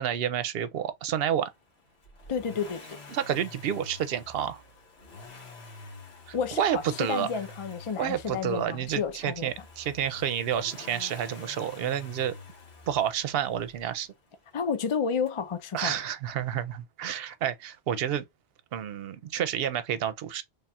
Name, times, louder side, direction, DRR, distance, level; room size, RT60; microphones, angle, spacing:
voice 1, 0.0-1.5 3.1-4.6 6.3-7.3 8.0-12.3 12.9-14.1 15.7-18.2 18.7-20.4, right 9 dB, 70° right, 0.8 m, -29 dB
Accelerating revving vroom, 2.0-14.0 15.3-15.4, left 3 dB, 85° left, 1.4 m, -47 dB
voice 2, 2.3-3.0 6.3-9.5 14.5-16.0, left 6 dB, 45° left, 0.4 m, -31 dB
3.4 x 2.3 x 4.1 m
omnidirectional pair, 1.1 m